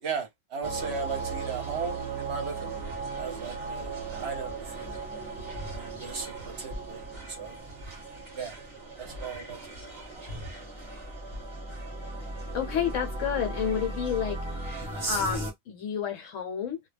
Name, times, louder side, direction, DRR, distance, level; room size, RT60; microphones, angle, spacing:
voice 1, 0.0-5.0 5.7-7.6 8.3-8.6 9.0-9.9, right 5 dB, 55° right, 0.8 m, -37 dB
sound 1, 0.6-15.5, right 3 dB, 25° right, 0.9 m, -37 dB
voice 2, 12.5-14.4 15.1-16.8, left 8 dB, 70° left, 1.0 m, -30 dB
2.3 x 2.0 x 3.2 m
omnidirectional pair, 1.5 m